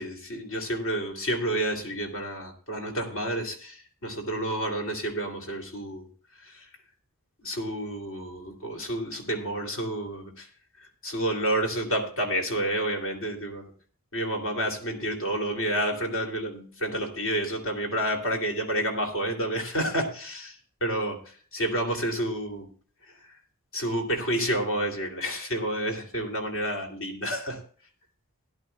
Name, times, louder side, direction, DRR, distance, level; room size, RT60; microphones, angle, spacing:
voice 1, 0.0-6.1 6.4-6.7 7.4-10.5 10.8-13.7 14.1-22.7 23.7-27.6, right 1 dB, 65° left, 2 dB, 2.7 m, -30 dB
17.5 x 11.0 x 2.2 m, 0.43 s
head